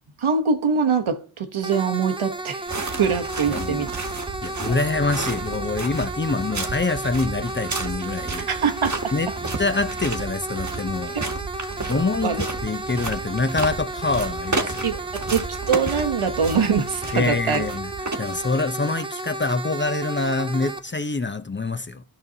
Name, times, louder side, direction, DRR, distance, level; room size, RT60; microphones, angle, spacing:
voice 1, 0.2-2.6 3.0-3.9 8.5-8.9 11.1-11.2 11.9-12.4 14.8-15.0 15.3-17.6, right 5 dB, 80° right, 1.0 m, -23 dB
sound 1, 1.6-20.8, right 2 dB, 10° right, 0.7 m, -33 dB
sound 2, 2.7-18.7, right 3 dB, 35° right, 1.2 m, -32 dB
voice 2, 3.5-3.9 4.4-8.5 9.1-9.3 9.6-11.2 11.9-15.0 17.1-17.9 18.2-22.0, left 3 dB, 25° left, 0.5 m, -25 dB
13.5 x 5.4 x 2.7 m
cardioid pair, 45°, 49 cm